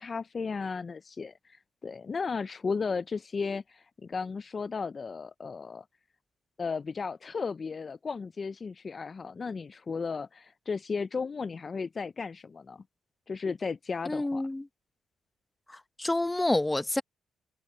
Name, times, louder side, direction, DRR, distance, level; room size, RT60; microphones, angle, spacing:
voice 1, 0.0-5.9 6.6-12.8 13.3-14.4, left 5 dB, 35° left, 0.4 m, -35 dB
voice 2, 14.1-14.7 15.7-17.0, left 2 dB, 15° left, 0.7 m, -28 dB
cardioid pair, 90°, 0 cm